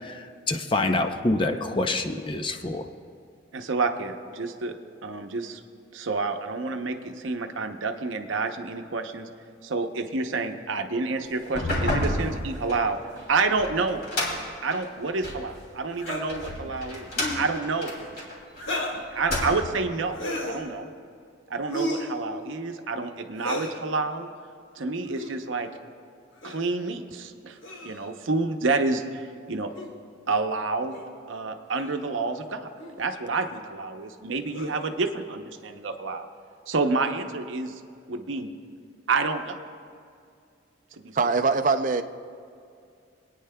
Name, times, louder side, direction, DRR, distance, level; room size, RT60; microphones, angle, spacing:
voice 1, 0.0-2.9, left 2 dB, 25° left, 6 dB, 0.5 m, -26 dB
voice 2, 3.5-4.7 5.0-5.6 5.9-9.3 9.6-13.0 13.3-17.1 17.4-17.9 18.9-20.9 21.5-24.3 24.8-25.7 26.4-27.6 27.8-29.7 30.3-31.0 31.3-32.7 33.0-36.3 36.7-37.8 38.1-38.6 39.1-39.6 41.0-41.2, right 3 dB, 80° right, 6 dB, 0.7 m, -29 dB
sound 1, 11.4-15.5 16.1-18.8 19.1-19.9, left 1 dB, 50° left, 2.6 m, -31 dB
sound 2, 16.0-16.2 17.1-17.4 18.6-19.0 20.1-20.6 21.7-22.1 23.4-23.8 25.1-25.3 26.4-26.6 27.6-28.1 29.7-29.9 30.9-31.1 31.7-32.0 32.8-33.0 34.5-34.9, left 1 dB, 90° left, 1.7 m, -33 dB
voice 3, 41.2-42.0, right 4 dB, 40° right, 8 dB, 0.5 m, -22 dB
27.0 x 9.3 x 2.2 m, 2.3 s
head